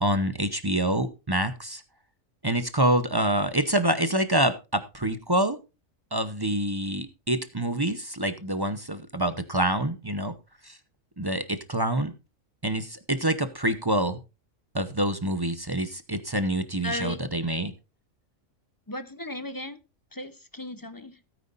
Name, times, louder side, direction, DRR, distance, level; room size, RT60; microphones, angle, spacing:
voice 1, 0.0-1.8 2.4-5.6 6.1-10.3 10.6-10.8 11.2-12.1 12.6-14.2 14.7-17.7, right 1 dB, 20° right, 11 dB, 0.7 m, -26 dB
voice 2, 16.8-17.2 18.9-19.8 20.1-21.2, left 1 dB, 20° left, 12 dB, 0.7 m, -36 dB
17.0 x 9.5 x 2.5 m, 0.27 s
omnidirectional pair, 1.4 m